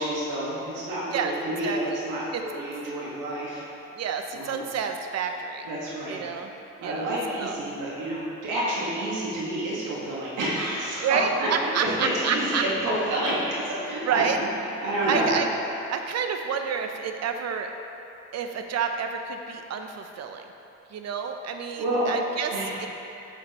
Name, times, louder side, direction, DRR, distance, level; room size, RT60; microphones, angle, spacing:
voice 1, 0.0-3.6 4.3-4.6 5.7-6.2 6.8-14.2 14.8-15.4 21.8-22.1 22.5-22.8, right 1 dB, 85° right, -6 dB, 1.7 m, -29 dB
voice 2, 1.6-2.0 2.3-2.4 3.9-5.6 6.1-6.5 6.8-7.1 7.4-7.6 11.0-12.6 14.1-14.4 15.1-15.5 15.9-17.7 18.3-20.4 20.9-22.5 22.8-22.9, right 6 dB, 60° right, 5 dB, 0.7 m, -29 dB
7.6 x 7.0 x 3.0 m, 2.8 s
cardioid pair, 90°, 30 cm